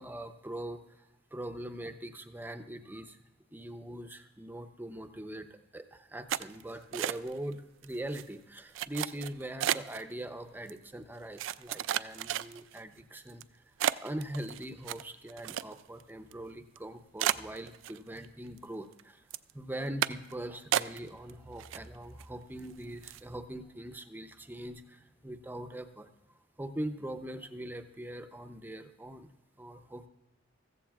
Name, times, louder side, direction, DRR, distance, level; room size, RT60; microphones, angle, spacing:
voice 1, 0.0-3.2 3.5-13.7 14.0-19.3 19.5-26.1 26.6-29.3 29.6-30.1, right 1 dB, 10° right, 8 dB, 0.6 m, -42 dB
sound 1, 6.3-7.5 7.8-8.2 8.7-10.0 10.7-10.8 11.4-12.8 13.3-13.4 13.8-16.0 16.3-16.4 16.8-16.9 17.2-18.3 18.6-19.0 19.3-19.5 20.0-20.3 20.7-21.3 21.6-22.2 22.6-22.7 23.0-23.3, right 11 dB, 85° right, 0.3 m, -33 dB
15.0 x 14.5 x 2.4 m, 1.1 s
head